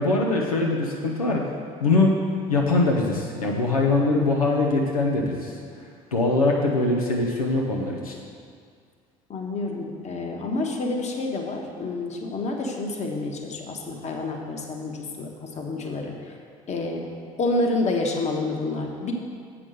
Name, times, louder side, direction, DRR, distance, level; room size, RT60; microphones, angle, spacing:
voice 1, 0.0-1.5 1.8-2.2 2.5-5.6 6.1-8.1, left 2 dB, 85° left, -2 dB, 0.8 m, -22 dB
voice 2, 9.3-16.3 16.7-17.0 17.4-19.1, left 2 dB, 40° left, 1 dB, 1.5 m, -28 dB
7.6 x 6.0 x 6.5 m, 2.1 s
figure-of-eight pair, 60°, 18 cm